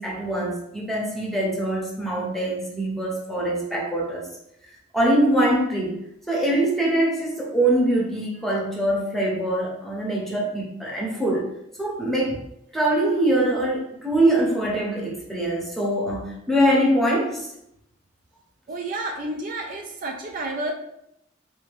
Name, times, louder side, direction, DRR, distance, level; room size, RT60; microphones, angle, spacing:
voice 1, 0.0-4.3 4.9-6.0 6.3-11.5 11.8-12.4 12.7-17.5, right 1 dB, ahead, -3 dB, 0.8 m, -23 dB
voice 2, 18.7-20.7, right 2 dB, 45° right, 3 dB, 0.4 m, -30 dB
3.9 x 2.7 x 3.5 m, 0.80 s
head